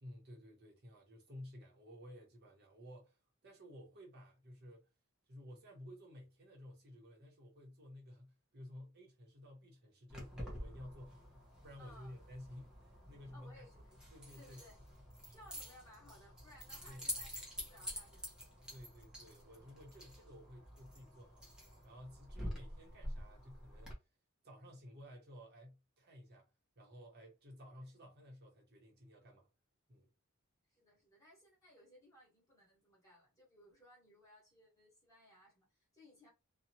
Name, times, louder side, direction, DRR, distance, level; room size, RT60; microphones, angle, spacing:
voice 1, 0.0-4.9 5.3-13.7 14.1-14.6 16.8-17.1 18.7-21.4 21.8-24.0 24.4-29.5 29.9-30.1, left 1 dB, 50° right, 0.8 m, -54 dB
Keys jangling, 10.1-23.9, equal, 5° right, 0.8 m, -48 dB
voice 2, 11.8-12.1 13.3-14.1 14.4-14.8 15.3-18.3 22.8-23.1 30.7-36.3, equal, 15° left, 1.4 m, -62 dB
2.7 x 2.2 x 2.8 m
head